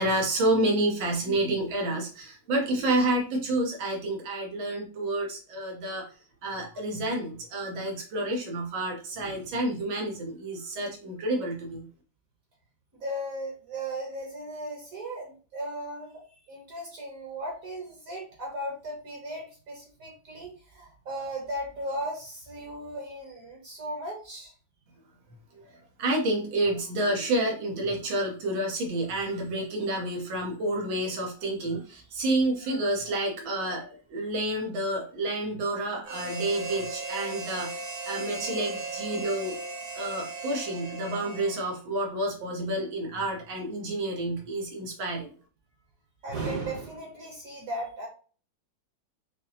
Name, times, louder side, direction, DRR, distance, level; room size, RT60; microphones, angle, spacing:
voice 1, 0.0-6.1 6.4-11.9 26.0-39.6 40.0-45.3, right 1 dB, 85° right, 0 dB, 1.8 m, -29 dB
voice 2, 12.9-16.2 16.5-24.5 40.0-40.1 46.2-48.1, right 1 dB, 55° right, -1 dB, 1.2 m, -36 dB
Harmonica, 36.1-41.8, right 2 dB, 70° right, 0.9 m, -37 dB
5.3 x 2.1 x 2.7 m, 0.39 s
omnidirectional pair, 2.1 m